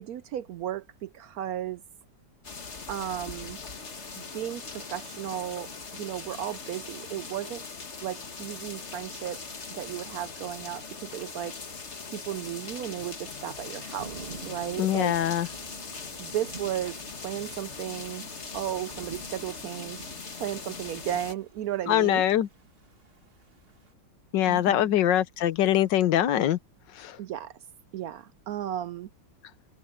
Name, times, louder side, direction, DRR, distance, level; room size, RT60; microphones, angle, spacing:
voice 1, 0.0-1.8 2.9-3.6 4.2-7.6 8.0-9.4 9.7-11.6 12.1-15.2 16.2-17.0 17.2-18.3 18.5-20.1 20.4-22.2 24.5-24.9 27.2-27.5 27.9-29.1, right 11 dB, 75° right, 0.8 m, -35 dB
sound 1, 2.4-21.3, left 4 dB, 40° left, 1.9 m, -41 dB
Thunder / Rain, 14.0-23.9, right 5 dB, 30° right, 2.1 m, -49 dB
voice 2, 14.8-15.5 21.9-22.5 24.3-26.6 27.0-27.2, left 11 dB, 75° left, 1.5 m, -23 dB
omnidirectional pair, 2.0 m